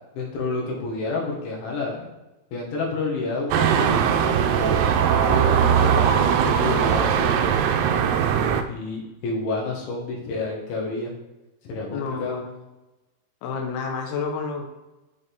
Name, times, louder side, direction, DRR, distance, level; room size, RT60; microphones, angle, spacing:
voice 1, 0.2-2.0 2.5-4.8 5.3-8.1 8.7-11.1 11.7-12.4, left 3 dB, 90° left, -1 dB, 4.1 m, -29 dB
sound 1, 3.5-8.6, right 8 dB, 85° right, 2.4 m, -20 dB
voice 2, 11.9-12.6 13.4-14.7, left 5 dB, 70° left, 2 dB, 2.8 m, -29 dB
8.5 x 6.9 x 3.5 m, 1.0 s
omnidirectional pair, 5.2 m